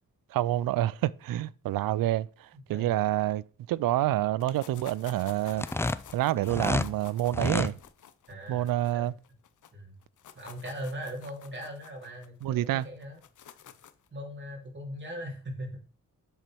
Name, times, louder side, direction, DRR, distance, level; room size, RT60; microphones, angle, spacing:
voice 1, 0.3-5.7 6.1-7.7 8.5-9.1 12.4-12.9, right 14 dB, 85° right, 0.5 m, -28 dB
voice 2, 2.5-3.0 8.3-9.1 9.7-10.0 10.3-13.2 14.1-15.8, equal, 35° right, 3.4 m, -40 dB
sound 1, 4.4-9.7 10.0-14.1, left 9 dB, 65° left, 0.8 m, -51 dB
sound 2, 5.5-6.9 7.3-7.7, left 2 dB, 10° left, 0.4 m, -29 dB
8.0 x 4.4 x 6.2 m
cardioid pair, 95°, 33 cm